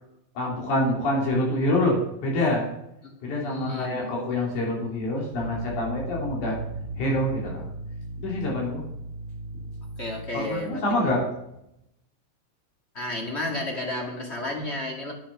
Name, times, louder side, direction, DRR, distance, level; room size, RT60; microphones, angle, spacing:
voice 1, 0.4-2.7 3.2-6.6 7.0-7.7 8.2-8.8 10.3-11.2, left 1 dB, 85° left, -3 dB, 4.3 m, -26 dB
voice 2, 3.4-4.1 10.0-11.1 12.9-15.1, left 1 dB, 25° left, 0 dB, 1.7 m, -32 dB
sound 1, 5.3-10.7, right 2 dB, 75° right, 2.9 m, -36 dB
10.5 x 10.0 x 5.9 m, 0.82 s
omnidirectional pair, 3.4 m